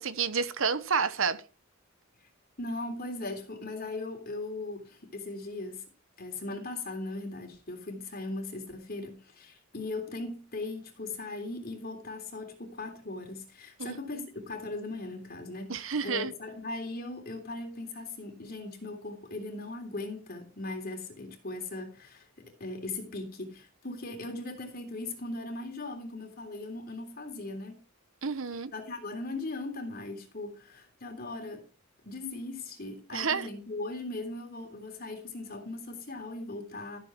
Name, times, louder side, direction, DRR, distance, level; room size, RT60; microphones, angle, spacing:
voice 1, 0.0-1.4 13.8-14.3 15.7-16.3 28.2-28.7 33.1-33.5, right 5 dB, 70° right, 1.1 m, -30 dB
voice 2, 2.6-5.8 6.2-27.8 28.7-31.7 32.0-37.0, left 2 dB, 45° left, 3.4 m, -39 dB
14.0 x 8.3 x 4.6 m
head